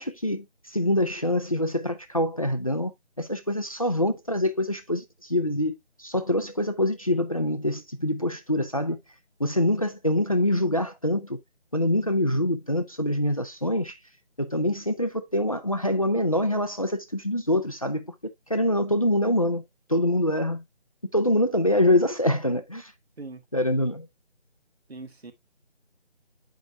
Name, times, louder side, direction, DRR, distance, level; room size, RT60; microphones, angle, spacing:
voice 1, 0.0-2.9 3.2-9.0 9.4-11.4 11.7-14.0 14.4-18.1 18.5-19.6 19.9-20.6 21.1-22.9 23.5-24.1, left 1 dB, 30° left, 0.6 m, -25 dB
voice 2, 24.9-25.3, right 3 dB, 60° right, 1.9 m, -40 dB
8.9 x 5.0 x 2.7 m
figure-of-eight pair, 165°, 35 cm